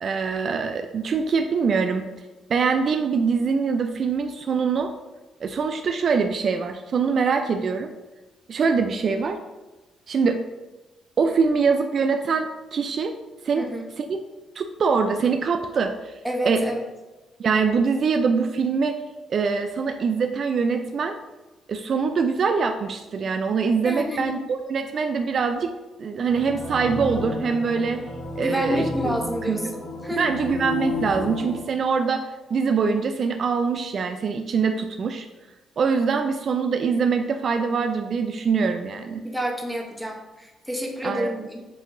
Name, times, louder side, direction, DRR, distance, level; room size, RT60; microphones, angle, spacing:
voice 1, 0.0-2.1 2.5-4.9 5.4-7.9 8.5-9.4 10.1-10.4 11.2-13.1 13.4-13.7 14.0-14.2 14.6-16.6 17.4-19.0 19.3-21.2 21.7-25.7 26.0-28.0 28.4-29.1 29.5-29.6 30.2-35.3 35.8-39.2 41.0-41.3, right 5 dB, 50° right, 6 dB, 0.3 m, -23 dB
voice 2, 13.6-13.9 16.2-16.8 23.8-24.4 28.4-30.3 39.2-41.6, equal, ahead, 1 dB, 0.8 m, -29 dB
sound 1, 26.3-31.6, left 2 dB, 80° left, 1.0 m, -32 dB
7.4 x 2.7 x 2.6 m, 1.1 s
cardioid pair, 90°, 0 cm